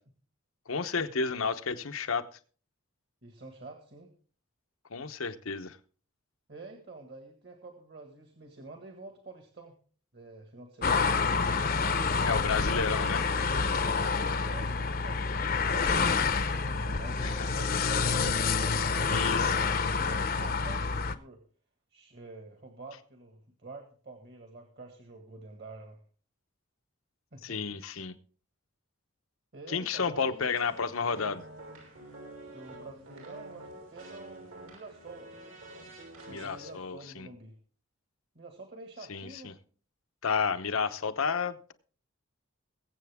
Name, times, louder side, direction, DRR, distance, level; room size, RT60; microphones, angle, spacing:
voice 1, 0.7-2.3 4.9-5.8 12.2-13.3 17.2-17.5 19.1-19.6 27.4-28.1 29.7-31.4 36.3-37.3 39.1-39.5 40.2-41.7, left 5 dB, 85° left, 10 dB, 0.9 m, -31 dB
voice 2, 3.2-4.1 6.5-9.7 10.1-11.2 14.2-14.7 15.0-17.9 18.5-21.4 21.9-26.0 27.3-27.6 29.5-30.5 32.5-35.3 36.3-37.6 38.4-39.6, right 3 dB, 50° right, 4 dB, 1.8 m, -48 dB
sound 1, 10.8-21.1, left 4 dB, 45° left, 0.7 m, -28 dB
sound 2, 30.5-36.8, right 1 dB, 80° right, 5.9 m, -48 dB
22.0 x 7.9 x 3.5 m, 0.42 s
head